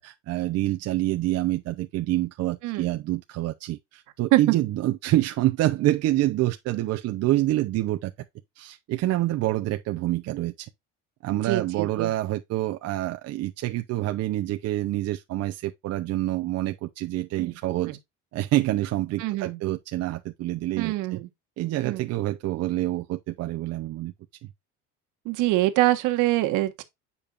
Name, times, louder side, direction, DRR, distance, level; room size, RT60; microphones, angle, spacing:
voice 1, 0.0-8.1 8.6-10.7 11.2-18.0 18.3-21.2 21.6-24.1 24.4-24.5, right 15 dB, 50° right, 0.7 m, -27 dB
voice 2, 11.3-12.1 17.4-17.5 17.9-18.0 19.2-19.6 20.8-21.3 21.8-22.1 25.2-26.8, right 17 dB, 65° right, 1.4 m, -24 dB
8.6 x 5.4 x 2.5 m
cardioid pair, 135°, 33 cm